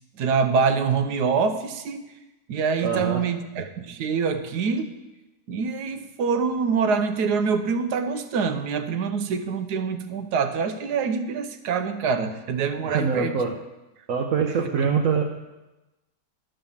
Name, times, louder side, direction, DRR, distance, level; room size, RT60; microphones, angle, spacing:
voice 1, 0.2-2.1 2.5-4.9 5.5-13.3 14.8-14.9, right 5 dB, 80° right, 9 dB, 1.4 m, -25 dB
voice 2, 2.8-3.2 12.9-13.6 14.1-15.2, right 6 dB, 60° right, 2 dB, 1.1 m, -24 dB
11.5 x 5.6 x 7.1 m, 1.0 s
omnidirectional pair, 1.7 m